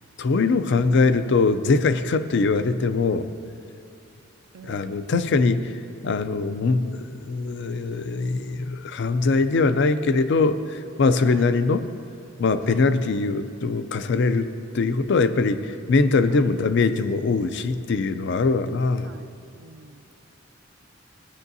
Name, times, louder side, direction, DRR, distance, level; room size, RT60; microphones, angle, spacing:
voice 1, 0.2-3.3 4.6-5.8 6.0-11.9 12.4-19.1, left 3 dB, 60° left, 11 dB, 0.4 m, -22 dB
voice 2, 4.5-5.0 11.2-11.5 12.7-12.8 16.3-16.8 19.0-20.1, right 4 dB, 70° right, 11 dB, 0.4 m, -45 dB
16.0 x 9.7 x 2.7 m, 2.7 s
head